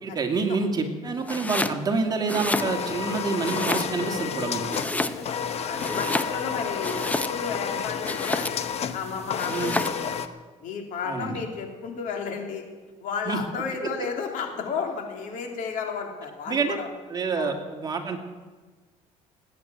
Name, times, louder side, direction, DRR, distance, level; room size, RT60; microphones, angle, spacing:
voice 1, 0.0-4.8 9.5-9.7 11.0-11.4 13.3-13.4 16.5-16.8 17.1-18.2, right 4 dB, 25° right, 3 dB, 2.4 m, -27 dB
Domestic sounds home sounds, 1.2-1.8 2.2-3.1 3.4-4.2 4.7-5.4 5.8-7.6 8.0-8.8 9.4-10.0, left 2 dB, 10° left, 0.8 m, -30 dB
sound 1, 2.5-10.3, left 7 dB, 45° left, 1.0 m, -31 dB
voice 2, 4.8-8.5 8.9-10.2 10.6-12.6 13.0-16.9 17.4-17.5, left 6 dB, 65° left, 3 dB, 3.1 m, -33 dB
18.5 x 9.4 x 7.7 m, 1.4 s
cardioid pair, 100°, 14 cm